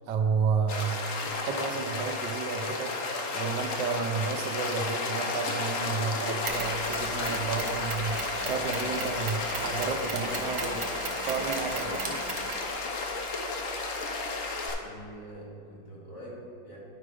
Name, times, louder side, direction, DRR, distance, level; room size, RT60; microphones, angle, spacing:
voice 1, 0.1-1.0 1.2-2.9 3.3-10.9 11.2-12.2, right 5 dB, 75° right, 4 dB, 1.2 m, -31 dB
sound 1, 0.7-14.8, left 3 dB, 55° left, 0.9 m, -32 dB
Mechanisms, 6.5-14.7, right 4 dB, 55° right, 1.1 m, -39 dB
voice 2, 14.7-16.8, right 1 dB, 70° left, -5 dB, 3.0 m, -45 dB
10.5 x 4.9 x 4.8 m, 2.4 s
omnidirectional pair, 2.0 m